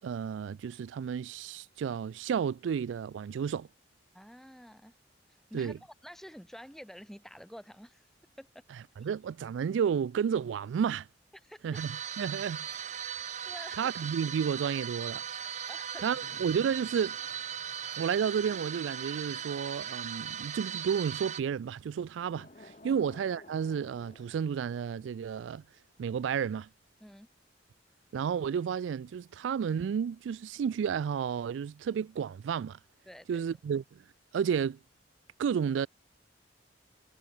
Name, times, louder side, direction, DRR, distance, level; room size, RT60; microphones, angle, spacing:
voice 1, 0.0-3.7 5.5-5.8 9.0-11.1 11.6-12.8 13.8-15.2 16.0-17.2 18.0-25.6 26.0-26.7 28.1-32.8 33.3-34.0 34.3-34.8 35.4-35.9, right 7 dB, 85° right, 0.3 m, -32 dB
voice 2, 4.1-5.0 5.3-8.1 8.4-8.6 9.0-9.1 11.4-11.8 12.4-12.5 13.4-13.9 15.7-16.1 22.8-23.0 27.0-27.3 33.0-33.4, equal, ahead, 1.5 m, -49 dB
sound 1, 11.7-21.4, right 8 dB, 40° right, 1.9 m, -38 dB
sound 2, 16.1-21.2 22.1-26.0 26.3-26.5, left 1 dB, 40° left, 2.8 m, -57 dB
head